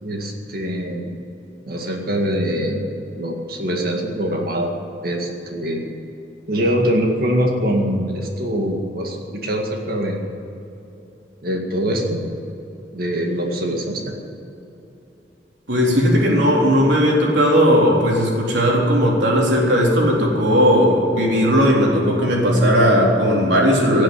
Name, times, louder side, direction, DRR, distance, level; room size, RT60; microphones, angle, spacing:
voice 1, 0.0-1.1 1.7-4.7 5.0-5.8 6.5-10.2 11.4-12.2 12.9-14.1, equal, 55° right, 1 dB, 2.0 m, -23 dB
voice 2, 15.7-24.0, equal, 75° right, -3 dB, 3.9 m, -16 dB
18.0 x 7.7 x 9.4 m, 2.9 s
head